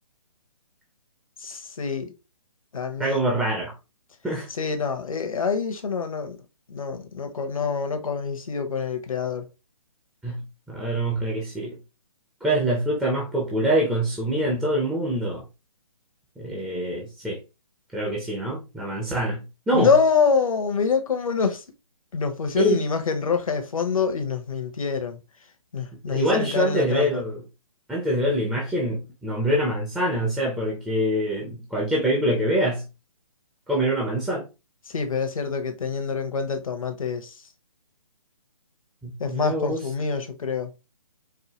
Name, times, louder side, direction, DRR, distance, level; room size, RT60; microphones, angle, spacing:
voice 1, 1.4-2.1 2.7-3.3 4.6-6.4 6.7-9.5 19.7-21.6 22.1-25.2 25.7-27.2 34.9-37.4 39.2-40.7, left 5 dB, 65° left, 0.9 m, -26 dB
voice 2, 3.0-3.7 4.2-4.5 10.2-11.8 12.4-15.4 16.4-17.4 17.9-19.9 22.6-22.8 26.1-27.4 27.9-32.9 33.7-34.4 39.0-39.8, right 1 dB, 5° right, 0.5 m, -25 dB
4.6 x 2.2 x 2.9 m
figure-of-eight pair, 145°, 19 cm